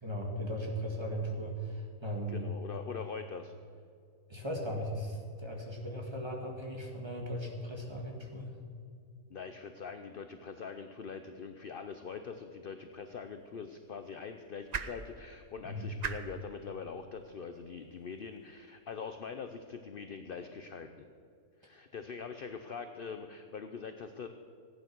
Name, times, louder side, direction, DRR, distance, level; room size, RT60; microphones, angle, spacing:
voice 1, 0.0-2.5 4.3-8.5 15.6-15.9, equal, 15° right, 0 dB, 1.9 m, -37 dB
voice 2, 2.3-3.5 9.3-21.0 21.6-24.3, left 5 dB, 55° left, 7 dB, 0.6 m, -43 dB
sound 1, 12.9-19.1, right 6 dB, 75° right, 0.3 m, -46 dB
15.5 x 9.4 x 6.1 m, 2.3 s
omnidirectional pair, 1.7 m